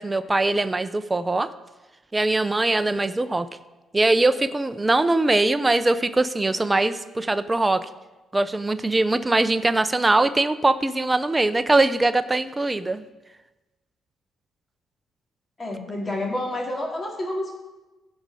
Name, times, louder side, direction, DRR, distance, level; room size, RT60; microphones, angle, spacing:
voice 1, 0.0-1.5 2.1-3.5 3.9-7.9 8.3-13.0, right 2 dB, 15° right, 11 dB, 0.5 m, -22 dB
voice 2, 15.6-17.5, left 1 dB, 30° left, -1 dB, 2.8 m, -29 dB
15.5 x 5.2 x 4.9 m, 1.1 s
cardioid pair, 90°, 0 cm